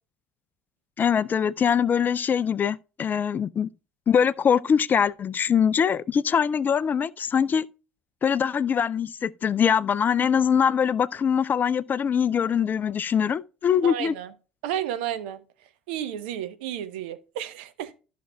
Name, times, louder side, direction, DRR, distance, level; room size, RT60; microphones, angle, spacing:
voice 1, 1.0-3.7 4.1-7.7 8.2-14.2, left 7 dB, 30° left, 0.4 m, -23 dB
voice 2, 13.8-14.3 14.6-15.4 15.9-17.9, right 10 dB, 65° right, 0.9 m, -32 dB
14.0 x 6.0 x 2.3 m
figure-of-eight pair, 60°, 6 cm